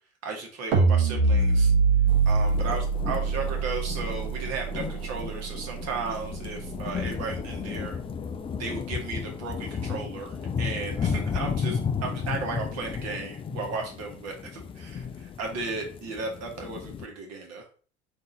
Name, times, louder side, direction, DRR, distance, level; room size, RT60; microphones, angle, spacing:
voice 1, 0.2-1.7 2.2-8.0 8.6-17.7, right 4 dB, 50° right, 2 dB, 1.4 m, -35 dB
sound 1, 0.7-7.0, right 4 dB, 70° right, 0.9 m, -24 dB
sound 2, 2.1-17.1, left 6 dB, 15° left, 0.3 m, -34 dB
3.7 x 2.8 x 3.9 m, 0.39 s
figure-of-eight pair, 65°, 34 cm